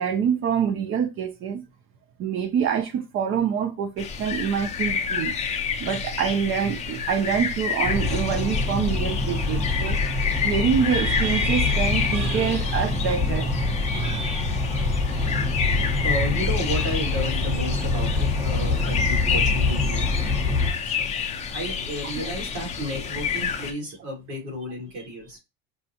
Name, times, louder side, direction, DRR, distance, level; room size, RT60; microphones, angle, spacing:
voice 1, 0.0-1.6 2.2-5.3 5.8-10.0 10.4-13.5 13.8-14.5, right 7 dB, 40° right, 0.5 m, -26 dB
sound 1, 4.0-23.7, left 6 dB, 20° left, 0.4 m, -29 dB
sound 2, 7.8-20.7, left 3 dB, 20° right, 1.0 m, -25 dB
voice 2, 16.0-21.1 21.5-25.4, equal, 80° right, 2.1 m, -32 dB
5.4 x 2.3 x 2.8 m
cardioid pair, 150°, 33 cm